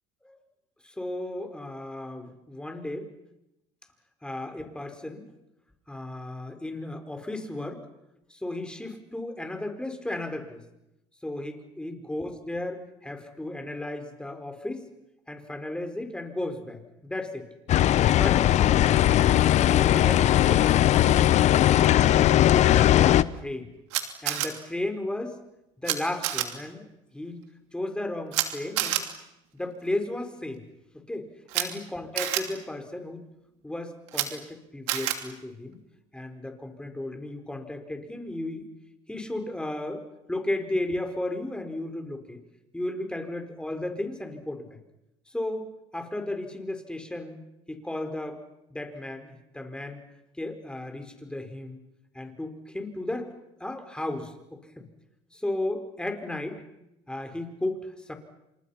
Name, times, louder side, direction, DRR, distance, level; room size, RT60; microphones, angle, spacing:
voice 1, 0.8-3.1 4.2-5.2 5.9-7.8 8.3-10.6 11.2-14.9 15.3-17.5 18.1-19.0 19.6-20.7 21.0-21.4 21.7-23.7 24.2-25.4 25.8-26.9 27.1-27.4 27.7-29.0 29.5-30.6 31.1-33.3 33.6-35.8 36.1-38.7 39.1-42.4 42.7-44.8 45.3-48.4 48.7-50.0 50.4-51.8 52.1-53.3 53.6-54.9 55.3-56.6 57.1-58.1, left 1 dB, 5° left, 6 dB, 4.9 m, -34 dB
sound 1, 17.7-23.2, left 12 dB, 55° left, 1.0 m, -19 dB
Camera, 23.9-24.5 25.8-25.9 26.2-26.4 28.3-28.5 28.8-29.0 31.5-31.6 32.2-32.4 34.1-34.3 34.9-35.2, right 15 dB, 90° right, 3.1 m, -27 dB
30.0 x 27.0 x 5.9 m, 0.88 s
supercardioid pair, 95°, 14 cm